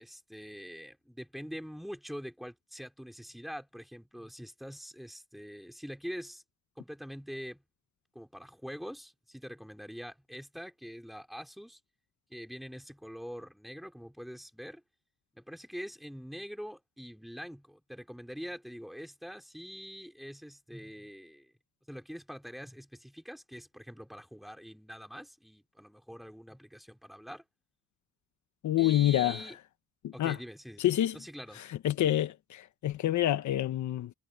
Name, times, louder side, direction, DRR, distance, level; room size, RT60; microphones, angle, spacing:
voice 1, 0.0-6.4 6.8-7.6 8.1-11.8 12.3-14.8 15.3-21.5 21.9-27.4 28.8-29.6 30.1-30.8 31.1-31.6, equal, ahead, 4.7 m, -44 dB
voice 2, 28.6-29.4 30.0-30.4 30.8-31.1 31.8-34.1, left 13 dB, 70° left, 1.3 m, -27 dB
cardioid pair, 90°, 30 cm